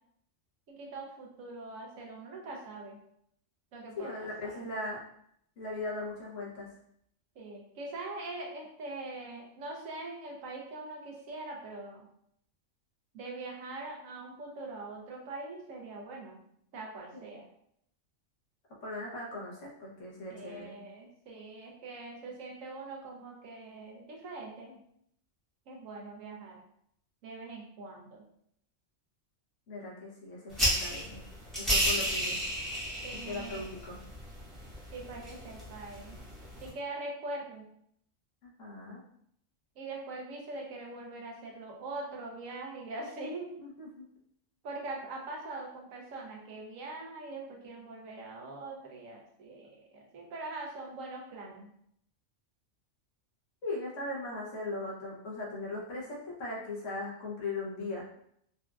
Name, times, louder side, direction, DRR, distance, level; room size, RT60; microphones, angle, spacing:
voice 1, 0.7-3.0 3.7-4.6 7.4-12.1 13.1-16.4 16.7-17.4 20.3-24.8 25.7-26.6 27.2-28.2 33.0-33.6 34.9-36.2 36.6-37.7 39.8-43.5 44.6-51.7, right 2 dB, 80° right, -1 dB, 1.1 m, -42 dB
voice 2, 4.0-5.0 5.6-6.7 17.1-17.3 18.8-20.8 29.7-31.2 31.6-32.4 33.2-34.0 38.4-39.0 43.6-44.1 53.6-58.1, left 2 dB, 70° left, -4 dB, 1.2 m, -39 dB
sound 1, 30.5-36.7, equal, ahead, 0.9 m, -33 dB
4.1 x 2.3 x 2.3 m, 0.71 s
omnidirectional pair, 1.3 m